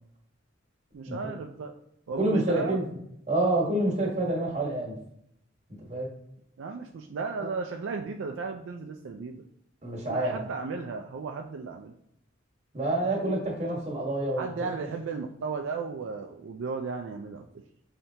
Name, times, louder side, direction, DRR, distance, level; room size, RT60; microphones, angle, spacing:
voice 1, 0.9-1.7 2.1-2.8 6.6-9.4 10.1-11.9 14.4-17.5, right 4 dB, 75° right, 3 dB, 0.4 m, -35 dB
voice 2, 2.1-2.8 3.3-4.9 5.9-6.1 9.8-10.4 12.7-14.9, right 1 dB, 35° right, -1 dB, 1.4 m, -28 dB
5.7 x 3.3 x 2.8 m, 0.76 s
head